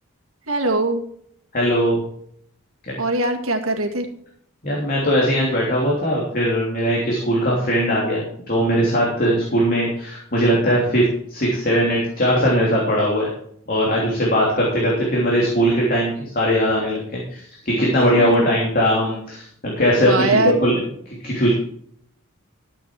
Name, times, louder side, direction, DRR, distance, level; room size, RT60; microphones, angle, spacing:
voice 1, 0.5-1.0 3.0-4.1 18.2-18.4 20.0-20.6, right 2 dB, 80° right, 4 dB, 1.9 m, -21 dB
voice 2, 1.5-2.0 2.8-2.9 4.6-11.0 11.3-13.3 13.7-21.5, equal, 40° left, -4 dB, 3.1 m, -20 dB
13.0 x 8.5 x 4.7 m, 0.66 s
head